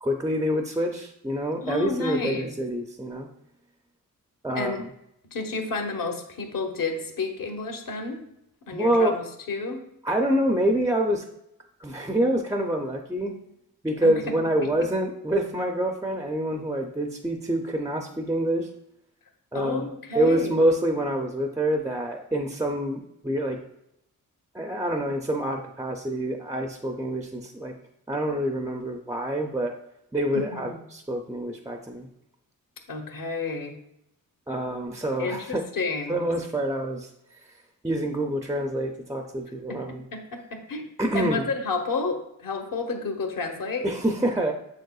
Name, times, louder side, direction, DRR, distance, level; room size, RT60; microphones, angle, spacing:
voice 1, 0.0-3.3 4.4-4.7 8.7-9.1 10.0-11.2 11.8-13.3 13.8-18.7 19.5-19.9 20.1-23.6 24.5-27.7 28.1-29.7 30.1-32.1 34.5-35.6 36.1-37.1 37.8-40.0 41.0-41.5 43.8-44.5, right 1 dB, 10° right, 3 dB, 0.4 m, -26 dB
voice 2, 1.6-2.5 4.5-4.8 5.3-8.2 8.7-9.8 14.0-14.1 19.5-20.6 30.3-30.8 32.9-33.7 35.2-36.2 39.7-40.8 41.1-43.9, left 3 dB, 70° left, 3 dB, 1.1 m, -31 dB
7.1 x 6.5 x 2.3 m, 0.79 s
wide cardioid pair, 170°, 35 cm